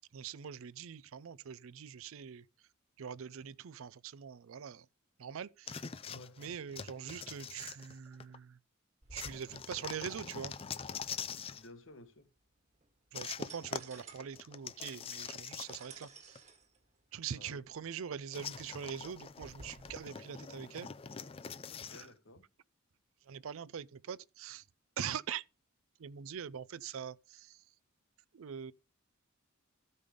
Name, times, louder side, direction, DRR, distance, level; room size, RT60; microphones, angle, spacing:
voice 1, 0.1-2.4 3.0-4.9 5.2-5.8 6.4-8.6 9.1-10.5 13.1-16.4 17.1-20.9 22.0-22.1 23.3-24.6 25.0-25.4 26.0-27.6 28.3-28.7, right 8 dB, 65° right, 0.4 m, -43 dB
sound 1, 5.7-8.4 9.2-11.7 13.1-16.1 16.4-16.5 18.3-22.1, left 6 dB, 25° left, 0.4 m, -44 dB
voice 2, 6.1-6.4 11.5-12.3 17.3-17.6 21.6-22.4, left 2 dB, 60° left, 1.1 m, -55 dB
sound 2, 9.0-19.9, right 3 dB, 30° right, 1.8 m, -58 dB
13.5 x 5.4 x 5.0 m
head